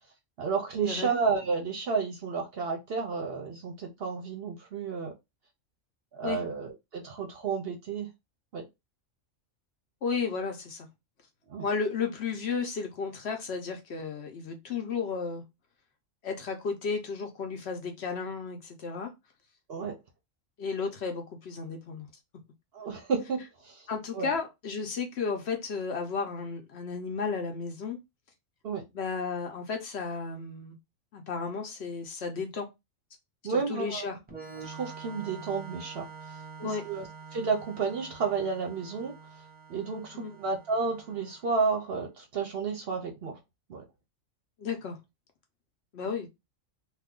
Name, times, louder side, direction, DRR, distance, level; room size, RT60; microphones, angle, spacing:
voice 1, 0.4-5.1 6.1-8.1 8.5-8.6 11.5-11.7 19.7-19.9 22.7-23.9 24.1-24.3 28.6-28.8 33.4-34.1 34.6-36.4 36.6-39.2 39.7-43.4 43.7-43.8 46.1-46.2, right 5 dB, 60° right, 0.7 m, -31 dB
voice 2, 10.0-10.9 11.6-15.4 16.2-19.1 20.6-22.1 23.9-28.0 28.9-30.8 31.1-32.7 33.5-34.2 36.6-36.9 40.1-40.3 44.6-45.0 45.9-46.3, left 5 dB, 60° left, 0.8 m, -33 dB
Organ, 34.3-41.8, right 5 dB, 10° right, 0.7 m, -46 dB
2.6 x 2.3 x 3.5 m
omnidirectional pair, 1.4 m